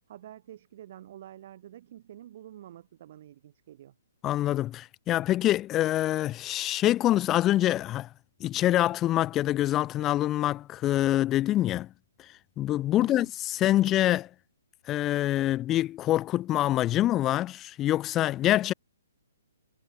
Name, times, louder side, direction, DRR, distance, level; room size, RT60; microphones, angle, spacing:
voice 1, 0.1-3.9 13.0-13.3, right 12 dB, 45° right, 1.4 m, -48 dB
voice 2, 4.2-8.1 8.4-11.9 12.6-14.3 14.9-18.7, left 14 dB, 20° left, 0.4 m, -25 dB
hypercardioid pair, 155°, 0 cm